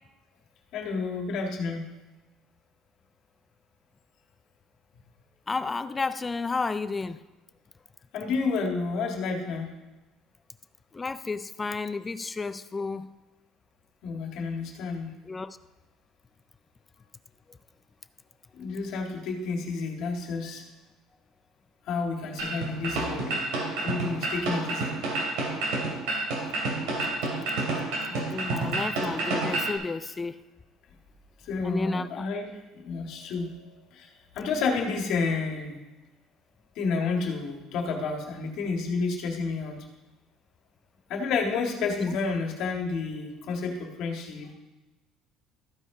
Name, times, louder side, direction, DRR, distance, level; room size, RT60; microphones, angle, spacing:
voice 1, 0.7-1.9 8.1-9.7 14.0-15.1 18.5-20.6 21.9-23.5 23.8-24.9 31.4-33.5 33.9-35.8 36.8-39.8 41.1-44.5, left 4 dB, 60° left, 2 dB, 1.8 m, -30 dB
voice 2, 5.5-7.2 10.9-13.1 15.3-15.6 28.1-30.4 31.6-32.3 42.0-42.1, left 4 dB, 15° left, 13 dB, 0.3 m, -32 dB
sound 1, 22.4-29.8, right 2 dB, 85° right, 2.9 m, -29 dB
13.5 x 5.4 x 4.9 m, 1.1 s
cardioid pair, 150°, 0 cm